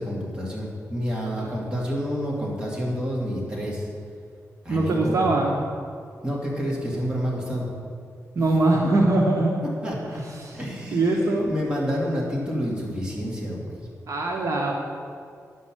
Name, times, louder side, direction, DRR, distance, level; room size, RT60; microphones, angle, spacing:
voice 1, 0.0-3.9 4.6-5.3 6.2-7.7 8.4-8.5 8.8-9.0 9.8-10.2 10.5-13.8, equal, 15° right, -4 dB, 2.5 m, -29 dB
voice 2, 4.7-5.5 8.3-9.5 10.4-10.6 10.9-11.5 14.1-14.7, right 2 dB, 65° right, -1 dB, 1.4 m, -22 dB
10.5 x 5.6 x 7.6 m, 2.2 s
wide cardioid pair, 115°, 6 cm